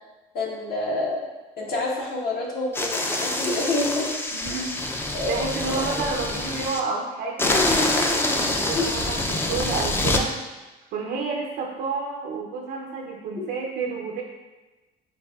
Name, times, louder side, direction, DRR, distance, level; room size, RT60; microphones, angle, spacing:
voice 1, 0.3-1.2 1.6-4.1 4.6-4.7 5.1-5.4 5.7-5.8 8.7-8.8 13.4-13.5, left 2 dB, 65° left, -3 dB, 1.1 m, -27 dB
sound 1, 2.7-6.8 7.4-10.2, left 2 dB, 15° left, 0.4 m, -25 dB
voice 2, 4.3-10.5 10.9-14.2, right 4 dB, 75° right, 0 dB, 0.5 m, -30 dB
6.6 x 2.5 x 2.3 m, 1.1 s
cardioid pair, 110°, 17 cm